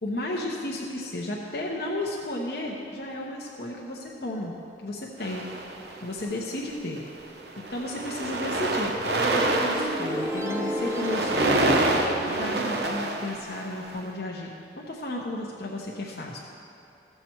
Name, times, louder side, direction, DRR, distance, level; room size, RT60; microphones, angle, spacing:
voice 1, 0.0-4.5 4.8-5.4 6.0-7.0 7.3-7.4 7.7-11.7 12.0-14.5 14.8-16.4, left 1 dB, 60° left, -3 dB, 1.0 m, -33 dB
sound 1, 5.2-6.2 7.0-7.2 7.5-13.9, right 2 dB, 70° right, 1.0 m, -27 dB
sound 2, 9.7-12.5, equal, 15° right, 0.8 m, -32 dB
15.5 x 6.9 x 4.5 m, 2.8 s
head